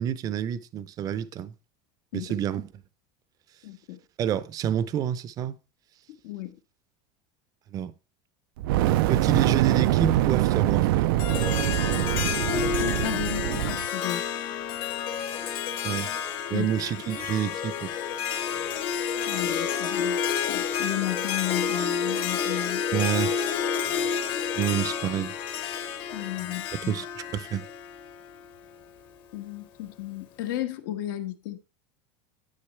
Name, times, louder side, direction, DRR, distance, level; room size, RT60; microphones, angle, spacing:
voice 1, 0.0-1.5 2.1-2.7 4.2-5.6 7.7-7.9 9.1-11.0 15.8-16.1 16.5-17.9 22.9-23.5 23.9-24.1 24.6-25.3 26.4-27.7, right 9 dB, 30° right, 0.6 m, -28 dB
voice 2, 3.6-4.0 6.2-6.6 12.8-14.2 16.5-16.7 19.3-20.2 20.5-22.8 26.1-26.9 29.3-31.6, left 14 dB, 75° left, 1.6 m, -33 dB
Fire, 8.6-13.9, right 14 dB, 80° right, 0.5 m, -24 dB
Harp, 11.2-28.5, left 7 dB, 45° left, 1.3 m, -30 dB
9.9 x 9.6 x 3.3 m
supercardioid pair, 155°, 12 cm